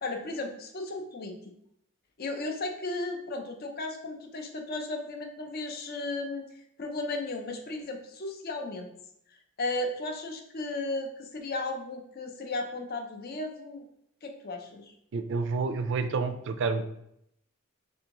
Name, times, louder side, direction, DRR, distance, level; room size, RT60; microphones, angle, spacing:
voice 1, 0.0-1.5 2.2-6.5 6.8-8.9 9.6-13.9 14.2-14.9, left 2 dB, 45° left, 3 dB, 0.5 m, -35 dB
voice 2, 15.1-16.8, right 4 dB, 55° right, 9 dB, 0.3 m, -29 dB
3.5 x 3.5 x 2.9 m, 0.75 s
head